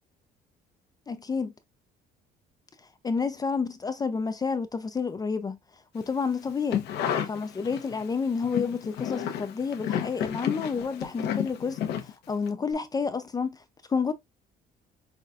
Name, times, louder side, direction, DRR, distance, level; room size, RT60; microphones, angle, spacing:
voice 1, 1.1-1.5 3.0-5.6 5.9-6.9 7.2-13.6 13.9-14.1, left 5 dB, 20° left, 0.4 m, -30 dB
sound 1, 6.5-8.0 8.4-12.5 12.7-12.8, left 9 dB, 80° left, 0.8 m, -31 dB
5.6 x 2.2 x 2.5 m
cardioid pair, 110°, 17 cm